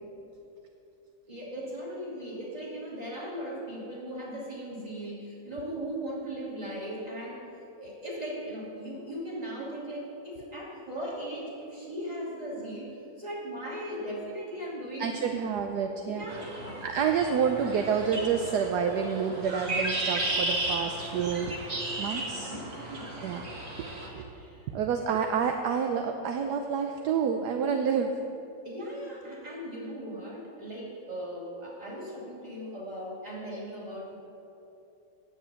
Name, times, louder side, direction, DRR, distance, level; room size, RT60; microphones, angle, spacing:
voice 1, 1.3-7.4 7.8-15.1 16.1-16.8 22.4-23.1 24.1-24.7 28.6-34.2, equal, 20° right, -5 dB, 2.7 m, -38 dB
voice 2, 15.0-16.3 16.8-21.5 22.0-22.6 23.2-23.4 24.0-24.2 24.7-28.1, right 7 dB, 70° right, 5 dB, 1.1 m, -28 dB
sound 1, 16.3-24.1, right 1 dB, 45° right, 2.1 m, -34 dB
9.3 x 7.5 x 8.8 m, 2.9 s
omnidirectional pair, 2.1 m